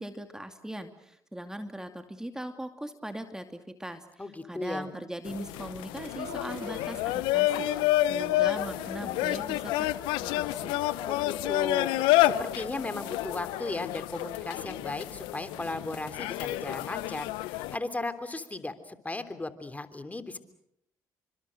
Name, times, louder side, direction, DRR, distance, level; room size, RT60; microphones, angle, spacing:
voice 1, 0.0-7.7 8.0-9.9 10.2-10.8, right 1 dB, 5° right, 7 dB, 2.6 m, -40 dB
voice 2, 4.2-4.9 11.1-11.9 12.2-20.4, left 2 dB, 20° left, 10 dB, 3.3 m, -36 dB
sound 1, 5.2-17.8, left 15 dB, 80° left, 1.0 m, -29 dB
sound 2, 5.9-16.1, right 5 dB, 80° right, 4.7 m, -52 dB
30.0 x 25.5 x 6.4 m, 0.72 s
hypercardioid pair, 55°, 8 cm